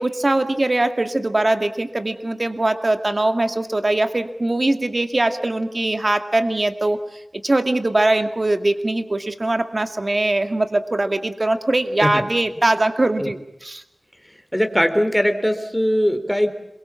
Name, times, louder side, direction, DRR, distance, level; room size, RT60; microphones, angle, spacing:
voice 1, 0.0-7.0 7.4-13.8, right 2 dB, 40° right, 8 dB, 2.2 m, -21 dB
voice 2, 14.5-16.5, equal, ahead, 7 dB, 3.6 m, -20 dB
27.0 x 23.0 x 7.3 m, 0.85 s
wide cardioid pair, 75°, 0 cm